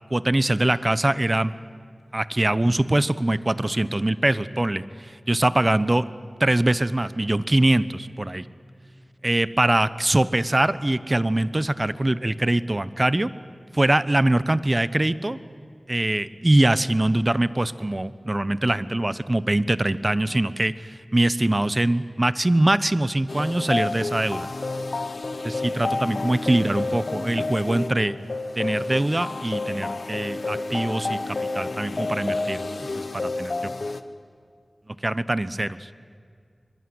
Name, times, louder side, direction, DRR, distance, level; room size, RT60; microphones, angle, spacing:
voice 1, 0.1-1.5 2.1-6.1 6.4-8.4 9.2-13.3 13.7-15.4 15.9-24.5 25.4-28.1 28.6-33.7 35.0-35.9, right 1 dB, 35° right, 16 dB, 0.9 m, -23 dB
sound 1, 23.3-34.0, left 3 dB, 75° left, 1.2 m, -30 dB
25.0 x 21.5 x 9.7 m, 2.2 s
wide cardioid pair, 45°, 0 cm